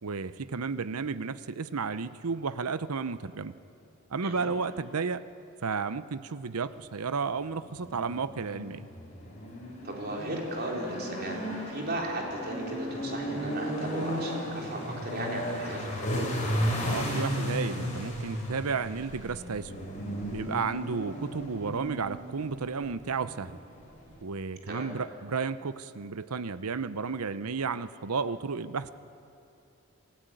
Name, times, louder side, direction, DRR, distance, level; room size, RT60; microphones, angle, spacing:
voice 1, 0.0-3.5 4.1-5.2 5.6-8.9 16.8-19.7 20.3-23.6 24.2-28.9, right 5 dB, 85° right, 14 dB, 0.7 m, -32 dB
sound 1, 7.6-24.2, equal, 35° left, 6.3 m, -35 dB
voice 2, 9.8-11.4 11.7-16.2 24.7-24.9, right 1 dB, 45° right, 0 dB, 3.8 m, -36 dB
27.0 x 16.0 x 9.1 m, 2.8 s
head